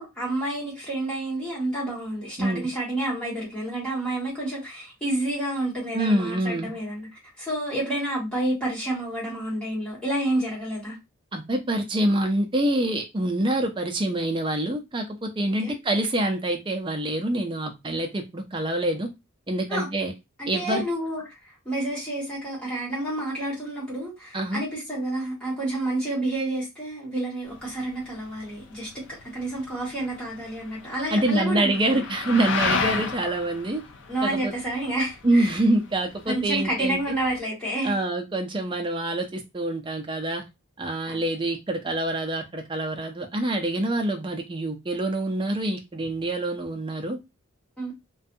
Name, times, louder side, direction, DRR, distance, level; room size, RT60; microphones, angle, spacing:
voice 1, 0.0-7.1 7.4-11.0 15.6-15.7 19.7-19.9 20.4-21.2 21.6-28.9 29.3-31.9 34.1-35.5 36.3-38.0 41.1-41.2 47.8-47.9, right 1 dB, 5° left, 1.4 m, -29 dB
voice 2, 5.9-6.7 11.3-19.1 19.5-20.1 20.5-20.8 24.3-24.6 31.1-33.8 34.2-34.5 35.2-37.0 37.8-40.4 40.8-47.2, right 1 dB, 25° right, 0.4 m, -26 dB
sound 1, 27.5-37.4, left 4 dB, 60° left, 0.4 m, -33 dB
2.6 x 2.2 x 2.6 m
head